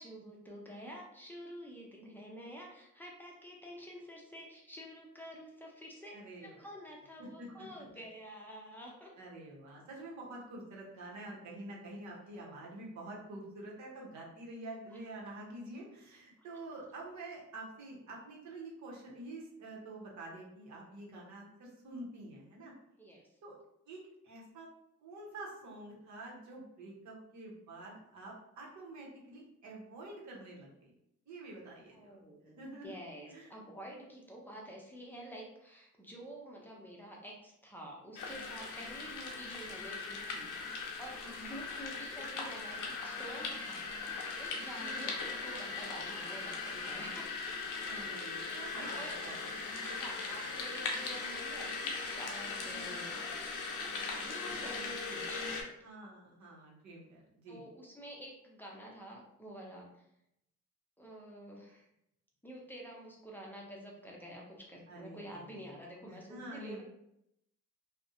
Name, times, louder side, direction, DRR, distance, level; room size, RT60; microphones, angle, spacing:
voice 1, 0.0-9.1 23.0-23.3 31.9-43.8 44.4-47.5 48.3-49.2 49.9-53.2 54.1-55.7 57.5-60.1 61.0-61.8 62.4-66.8, equal, 5° left, -2 dB, 0.6 m, -49 dB
voice 2, 6.1-6.6 7.2-7.7 9.1-22.7 23.4-23.5 23.9-24.7 25.0-30.9 31.3-32.9 33.3-33.6 41.2-41.6 44.7-45.1 47.8-49.5 55.8-57.6 64.9-65.8 66.0-66.8, right 2 dB, 70° right, -2 dB, 0.9 m, -48 dB
sound 1, 38.2-55.6, left 4 dB, 85° left, 0.6 m, -39 dB
2.5 x 2.1 x 2.5 m, 0.80 s
cardioid pair, 90°, 30 cm